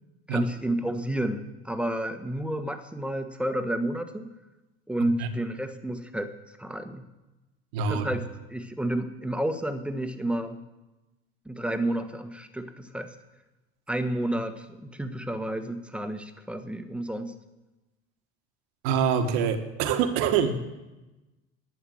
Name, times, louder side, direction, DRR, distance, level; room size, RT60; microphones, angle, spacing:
voice 1, 0.3-4.3 4.9-6.3 6.6-7.1 7.9-10.6 11.4-13.1 13.9-17.3, right 1 dB, 5° right, 8 dB, 1.4 m, -30 dB
voice 2, 7.7-8.1 18.8-20.5, right 7 dB, 65° right, 8 dB, 1.7 m, -25 dB
11.0 x 9.5 x 7.7 m, 1.1 s
hypercardioid pair, 70°, 34 cm